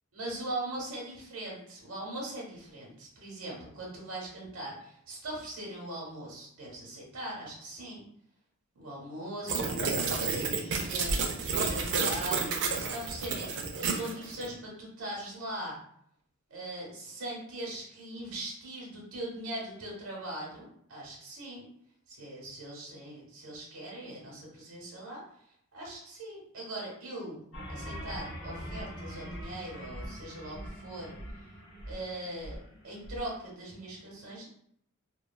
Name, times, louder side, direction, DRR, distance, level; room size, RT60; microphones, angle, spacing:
voice 1, 0.1-8.0 8.7-9.8 10.1-11.2 11.5-15.8 16.5-21.7 22.1-25.2 25.7-27.4 27.7-31.1 31.8-32.6 32.8-34.5, right 1 dB, 85° right, -3 dB, 1.1 m, -40 dB
sound 1, 9.5-14.5, right 4 dB, 60° right, 0.4 m, -30 dB
sound 2, 27.5-33.2, equal, 90° left, 1.2 m, -42 dB
3.1 x 2.2 x 2.2 m, 0.67 s
head